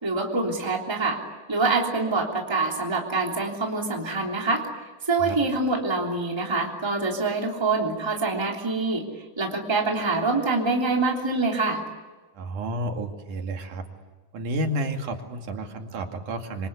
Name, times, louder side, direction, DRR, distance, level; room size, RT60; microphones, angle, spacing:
voice 1, 0.0-1.2 1.5-4.7 5.1-9.0 9.4-11.8, right 3 dB, 10° right, 0 dB, 3.0 m, -25 dB
voice 2, 12.3-13.9 14.3-16.7, right 1 dB, 70° right, 4 dB, 3.8 m, -31 dB
26.5 x 25.5 x 8.3 m, 1.3 s
omnidirectional pair, 3.7 m